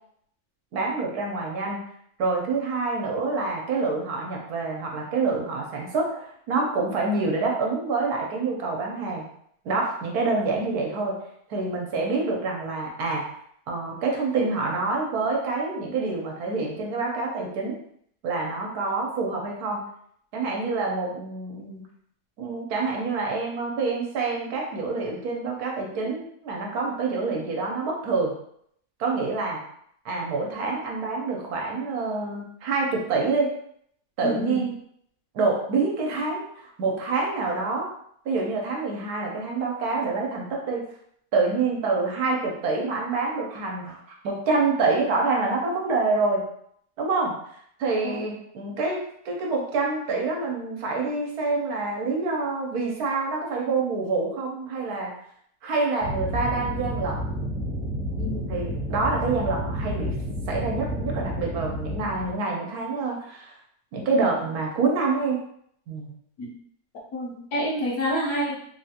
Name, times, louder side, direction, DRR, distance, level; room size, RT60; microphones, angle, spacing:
voice 1, 0.7-1.8 2.2-9.2 9.6-11.2 11.5-13.2 13.7-17.8 18.2-19.8 20.3-21.9 22.4-28.3 29.0-29.6 30.0-33.5 34.2-34.7 35.3-37.9 38.2-40.8 41.3-46.4 47.0-47.3 47.8-49.0 49.2-55.1 55.6-57.3 58.5-60.1 60.5-63.6 63.9-65.4 65.9-66.1, right 3 dB, 70° right, -1 dB, 1.2 m, -27 dB
voice 2, 34.2-34.6 48.0-48.2 58.2-58.5 66.4-66.5 67.1-68.6, equal, 65° left, -4 dB, 1.3 m, -28 dB
sound 1, 56.0-62.3, equal, 40° right, 0.8 m, -30 dB
3.3 x 2.4 x 2.8 m, 0.68 s
omnidirectional pair, 1.7 m